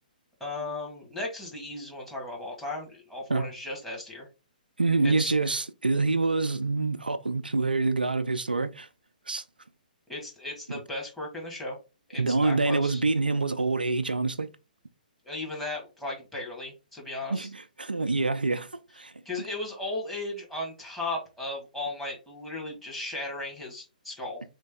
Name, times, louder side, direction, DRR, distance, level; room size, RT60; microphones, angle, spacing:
voice 1, 0.4-4.3 5.0-5.3 10.1-11.8 12.1-13.0 15.2-17.5 19.2-24.4, left 2 dB, 5° left, 1.5 m, -36 dB
voice 2, 4.8-8.9 9.3-9.4 12.2-14.5 17.3-18.7 18.9-19.1, right 3 dB, 85° right, 0.4 m, -26 dB
3.3 x 3.2 x 3.4 m
figure-of-eight pair, 125°, 5 cm